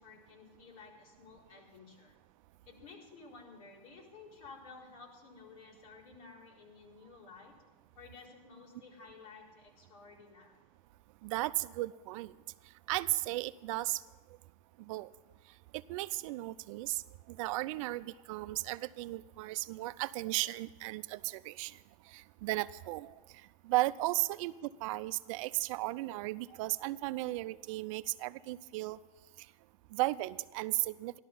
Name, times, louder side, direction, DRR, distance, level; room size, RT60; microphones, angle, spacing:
voice 1, 0.0-2.2 2.7-7.6 7.9-10.6 29.9-30.0, left 4 dB, 70° left, -2 dB, 4.3 m, -54 dB
voice 2, 11.2-12.3 12.9-14.0 14.9-15.1 15.7-17.0 17.3-21.8 22.1-23.1 23.6-29.0 29.9-31.1, right 18 dB, 60° right, 15 dB, 0.5 m, -35 dB
14.0 x 12.0 x 5.4 m, 1.2 s
supercardioid pair, 130°, 19 cm